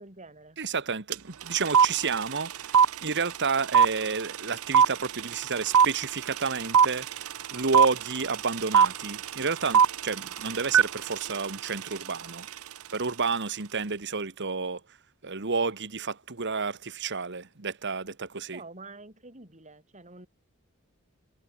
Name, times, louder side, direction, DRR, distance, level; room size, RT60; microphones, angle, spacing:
voice 1, 0.0-0.6 18.5-20.3, right 3 dB, 35° right, 7.6 m, -47 dB
voice 2, 0.6-12.5 12.9-14.8 15.2-18.6, right 4 dB, 55° right, 1.7 m, -31 dB
sound 1, 1.1-1.2 1.4-12.6, right 7 dB, 85° right, 0.8 m, -22 dB
head